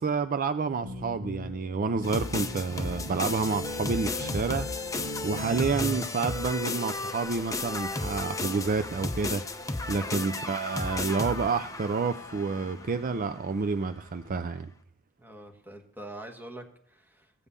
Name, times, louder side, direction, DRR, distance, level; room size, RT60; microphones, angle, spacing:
voice 1, 0.0-5.0 5.2-9.4 9.9-14.7, right 4 dB, 40° right, 11 dB, 0.4 m, -29 dB
sound 1, 0.7-6.0, left 1 dB, 85° right, 2.0 m, -39 dB
sound 2, 2.0-13.1, left 3 dB, 15° left, 0.7 m, -34 dB
sound 3, 3.0-14.4, left 3 dB, 40° left, 1.3 m, -51 dB
voice 2, 15.2-17.3, right 1 dB, 10° right, 3 dB, 1.4 m, -45 dB
15.5 x 5.4 x 8.2 m, 0.65 s
head